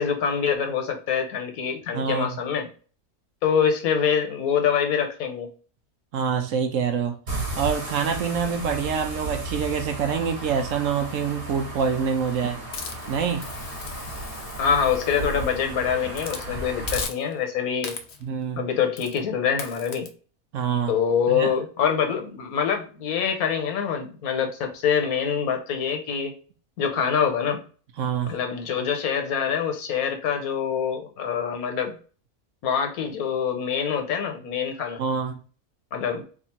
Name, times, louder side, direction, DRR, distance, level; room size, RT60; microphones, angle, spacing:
voice 1, 0.0-2.7 3.4-5.5 14.6-18.0 18.6-20.1 20.9-26.3 26.8-27.6 28.3-31.9 32.6-35.0 35.9-36.2, left 7 dB, 75° left, 1.3 m, -25 dB
voice 2, 1.9-2.3 6.1-7.2 7.6-12.6 13.1-13.5 18.2-18.7 20.5-20.9 21.3-21.5 28.0-28.4 35.0-35.4, right 6 dB, 65° right, 0.9 m, -26 dB
sound 1, 7.3-17.0, right 1 dB, 40° right, 1.2 m, -34 dB
Hiss, 12.7-15.6 16.1-16.5 16.9-17.5 17.8-18.3 19.0-19.2 19.6-20.1, left 5 dB, 60° left, 0.7 m, -37 dB
3.6 x 2.4 x 4.2 m
omnidirectional pair, 1.6 m